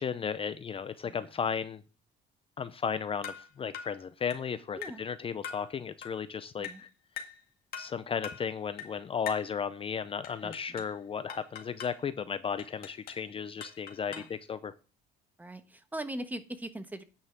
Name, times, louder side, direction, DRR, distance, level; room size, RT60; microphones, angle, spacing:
voice 1, 0.0-1.8 2.6-6.9 7.8-14.7, left 7 dB, 35° left, 0.6 m, -35 dB
sound 1, 3.2-3.5 3.7-4.0 4.3-4.5 4.8-5.1 5.4-5.7 6.0-6.2 6.6-6.9 7.2-7.4 7.7-8.0 8.2-8.5 8.8-9.0 9.3-9.5 10.2-11.0 11.3-12.0 12.6-13.3 13.6-14.4, left 7 dB, 65° left, 2.0 m, -43 dB
voice 2, 10.4-10.8 14.1-14.4 15.4-17.0, right 1 dB, 10° right, 1.2 m, -41 dB
9.6 x 5.6 x 5.9 m
cardioid pair, 110°, 17 cm